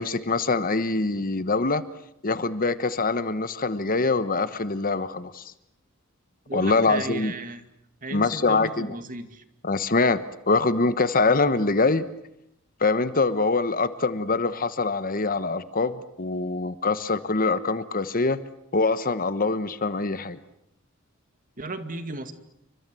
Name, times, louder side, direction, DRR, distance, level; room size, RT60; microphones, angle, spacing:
voice 1, 0.0-1.8 2.2-5.4 6.5-7.3 8.1-9.0 9.6-12.0 12.8-18.4 18.7-20.4, left 3 dB, 45° left, 13 dB, 1.2 m, -24 dB
voice 2, 6.5-7.6 8.0-9.4 21.6-22.3, right 2 dB, 40° right, 9 dB, 2.3 m, -35 dB
29.0 x 25.0 x 7.8 m, 0.79 s
head